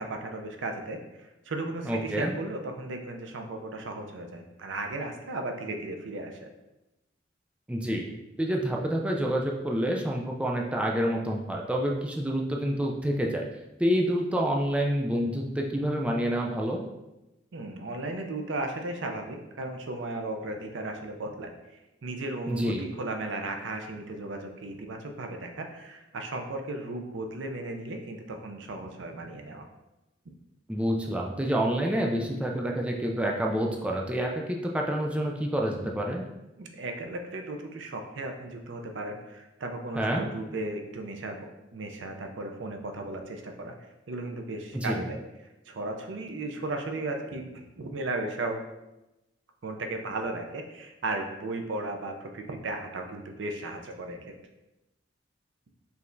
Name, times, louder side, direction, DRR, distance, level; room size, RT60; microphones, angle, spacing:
voice 1, 0.0-6.5 17.5-21.5 22.0-29.7 36.6-41.4 41.7-43.7 44.1-45.2 45.7-48.6 49.6-54.3, right 2 dB, 75° right, 4 dB, 0.5 m, -35 dB
voice 2, 1.9-2.3 7.7-8.0 8.4-13.4 13.8-16.8 22.5-22.8 30.7-36.2 40.0-40.2 44.7-45.0, equal, 5° right, 0 dB, 0.3 m, -28 dB
4.7 x 3.3 x 2.6 m, 0.98 s
head